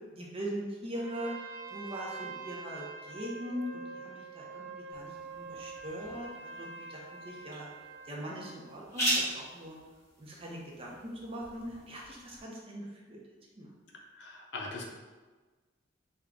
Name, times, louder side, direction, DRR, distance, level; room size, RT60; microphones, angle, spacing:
voice 1, 0.1-1.3 1.7-7.0 7.2-7.7 8.1-9.8 10.2-10.9 11.2-13.2 13.6-13.7, equal, 30° right, -3 dB, 0.6 m, -41 dB
Trumpet, 0.9-8.6, right 4 dB, 80° right, 0.5 m, -45 dB
sound 1, 4.9-12.4, right 1 dB, 15° left, 1.2 m, -39 dB
voice 2, 14.2-14.8, left 3 dB, 65° left, 0 dB, 0.6 m, -40 dB
3.7 x 2.2 x 3.4 m, 1.3 s
head